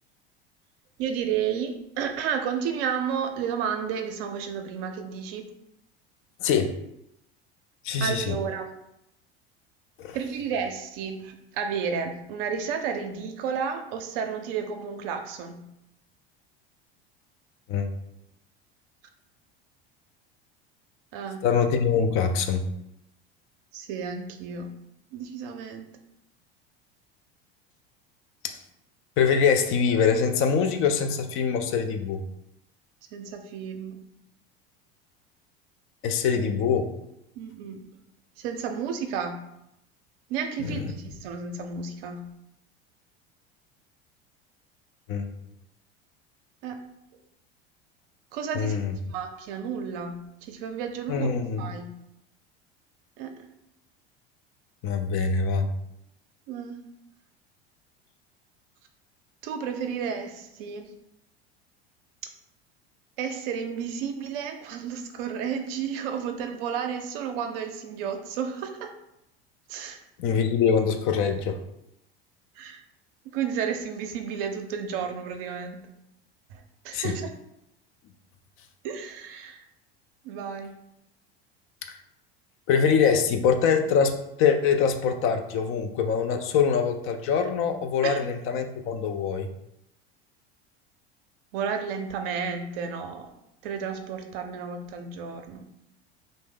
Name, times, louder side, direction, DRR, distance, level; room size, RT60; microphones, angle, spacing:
voice 1, 1.0-5.4 8.0-8.7 10.1-15.6 21.1-21.4 23.7-24.7 25.1-25.9 33.1-34.0 36.4-36.5 37.4-37.8 38.4-39.4 40.3-42.3 46.6-46.8 48.3-48.8 49.1-51.3 51.6-51.9 53.2-53.3 56.5-56.8 59.4-61.0 63.2-68.9 69.7-70.0 72.6-72.8 73.3-75.8 76.5-77.3 78.8-79.6 80.2-80.7 88.0-88.2 91.5-93.3 93.6-95.7, right 7 dB, 65° right, 5 dB, 0.5 m, -32 dB
voice 2, 6.4-6.7 7.8-8.4 10.0-10.2 17.7-17.9 21.4-22.6 28.4-28.6 29.2-32.2 36.0-36.9 40.6-40.9 45.1-45.3 48.5-48.9 51.1-51.7 54.8-55.7 70.2-71.6 76.9-77.1 82.7-89.5, left 6 dB, 45° left, 6 dB, 0.4 m, -24 dB
2.6 x 2.0 x 3.5 m, 0.81 s
hypercardioid pair, 80°, 32 cm